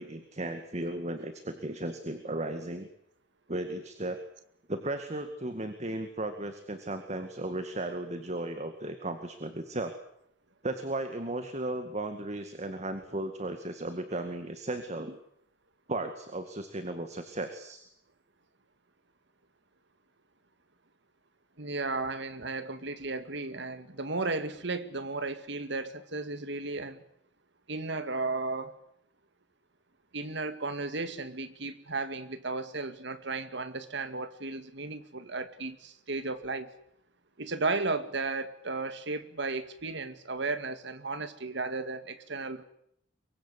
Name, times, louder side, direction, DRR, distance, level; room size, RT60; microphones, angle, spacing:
voice 1, 0.0-2.9 3.5-4.2 4.7-10.0 10.6-15.2 15.9-17.8, right 2 dB, 35° right, 8 dB, 2.1 m, -35 dB
voice 2, 21.6-27.0 27.7-28.8 30.1-36.7 37.4-42.6, right 3 dB, 65° right, 11 dB, 2.2 m, -34 dB
24.0 x 23.5 x 8.3 m, 0.73 s
head